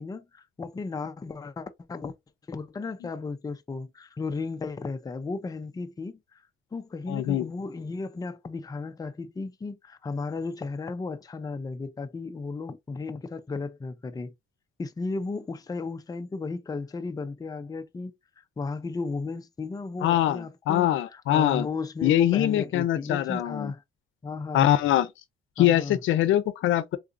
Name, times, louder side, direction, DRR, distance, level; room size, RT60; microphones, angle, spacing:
voice 1, 0.0-2.1 2.5-6.4 6.7-14.3 14.8-23.8 24.2-24.7 25.6-26.0, left 4 dB, 20° left, 0.5 m, -35 dB
voice 2, 7.1-7.5 20.0-21.7 22.0-23.7 24.5-25.1 25.6-27.0, left 12 dB, 80° left, 0.6 m, -23 dB
3.8 x 2.4 x 2.5 m
cardioid pair, 90°, 20 cm